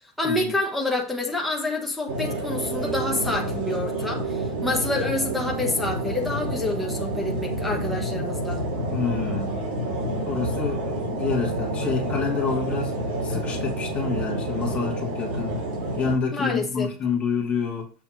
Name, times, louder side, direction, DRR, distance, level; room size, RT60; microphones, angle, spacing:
voice 1, 0.2-8.6 16.3-16.9, left 2 dB, ahead, 1.1 m, -27 dB
sound 1, 2.1-16.2, right 1 dB, 85° right, 3.0 m, -28 dB
voice 2, 8.9-9.6 10.2-12.9 13.2-15.6 16.0-17.9, left 5 dB, 25° left, 1.3 m, -28 dB
7.3 x 3.3 x 5.9 m
supercardioid pair, 155°, 5 cm